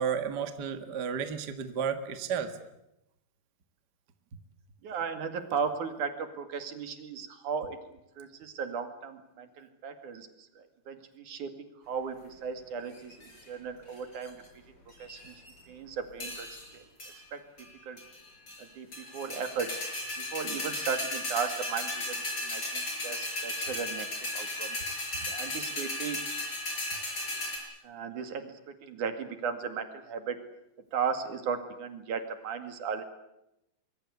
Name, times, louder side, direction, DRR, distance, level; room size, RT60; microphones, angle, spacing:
voice 1, 0.0-2.5, right 7 dB, 40° right, 9 dB, 1.8 m, -32 dB
voice 2, 4.8-11.5 11.9-14.4 15.0-15.3 15.7-16.5 16.7-16.8 17.3-17.4 17.9-18.0 18.6-19.7 20.2-24.1 24.3-24.8 25.3-26.2 27.8-30.4 30.9-33.0, right 6 dB, 65° right, 8 dB, 3.5 m, -36 dB
sound 1, 12.9-13.4 14.0-14.5 14.9-15.6 16.2-16.7 17.0-17.2 17.6-17.7 18.0-18.6 18.9-27.6, left 1 dB, 30° left, 7.0 m, -35 dB
24.5 x 22.5 x 8.2 m, 0.86 s
omnidirectional pair, 3.8 m